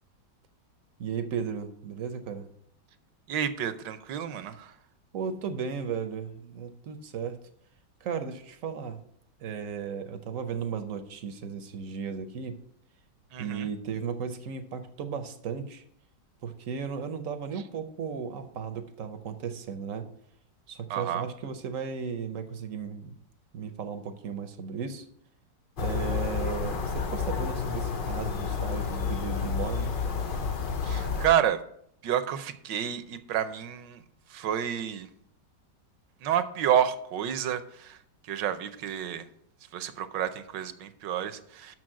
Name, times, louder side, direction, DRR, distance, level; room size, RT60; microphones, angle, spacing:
voice 1, 1.0-2.5 5.1-7.4 8.0-9.0 9.4-12.6 13.4-15.8 16.4-20.1 20.7-23.1 23.5-25.0 25.8-29.9, right 6 dB, 55° right, 9 dB, 0.9 m, -35 dB
voice 2, 3.3-4.7 13.3-13.7 20.9-21.2 30.8-31.6 32.0-34.0 34.3-35.1 36.2-38.0 38.2-39.3 39.7-41.8, right 9 dB, 75° right, 11 dB, 1.3 m, -29 dB
sound 1, 25.8-31.3, left 6 dB, 90° left, 0.4 m, -30 dB
6.6 x 6.2 x 7.5 m, 0.69 s
omnidirectional pair, 2.0 m